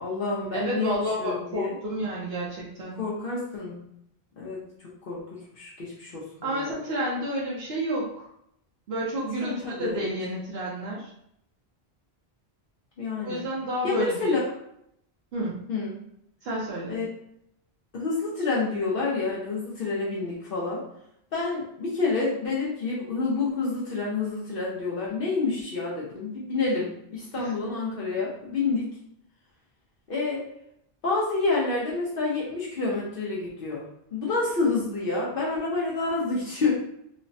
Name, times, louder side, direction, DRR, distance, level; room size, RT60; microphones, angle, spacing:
voice 1, 0.0-1.8 3.0-3.8 4.4-6.7 9.4-10.1 13.0-13.4 13.8-14.5 15.7-15.9 16.9-17.1 17.9-20.8 21.3-28.9 30.1-30.4 31.0-33.9 34.1-36.7, left 3 dB, 60° left, -5 dB, 0.8 m, -28 dB
voice 2, 0.5-3.0 6.4-8.3 8.9-11.1 13.2-14.4 15.3-15.6 16.4-17.0, equal, 75° right, -5 dB, 0.9 m, -30 dB
3.2 x 2.0 x 2.6 m, 0.74 s
omnidirectional pair, 1.1 m